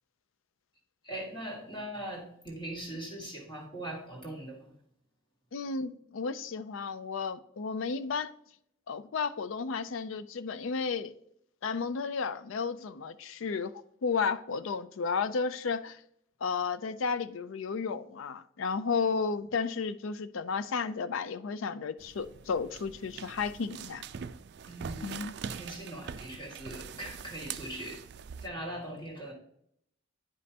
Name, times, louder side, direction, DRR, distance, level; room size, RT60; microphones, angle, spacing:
voice 1, 1.0-4.8 24.6-25.1 25.5-28.1 28.4-29.3, right 1 dB, 25° left, 2.0 m, -41 dB
voice 2, 5.5-8.3 8.9-11.1 11.6-13.7 14.0-16.0 16.4-24.0 25.0-25.3, left 5 dB, 80° left, 0.4 m, -33 dB
sound 1, 22.0-28.5, right 7 dB, 55° right, 0.3 m, -43 dB
9.8 x 5.2 x 2.8 m
head